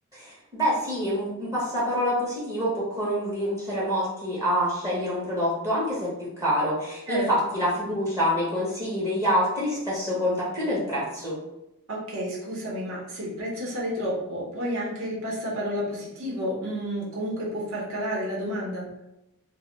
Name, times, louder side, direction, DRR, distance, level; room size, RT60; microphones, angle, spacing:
voice 1, 0.1-11.4, equal, 15° right, -7 dB, 0.6 m, -26 dB
voice 2, 11.9-18.9, equal, 65° right, -4 dB, 0.7 m, -30 dB
2.1 x 2.1 x 3.8 m, 0.92 s
head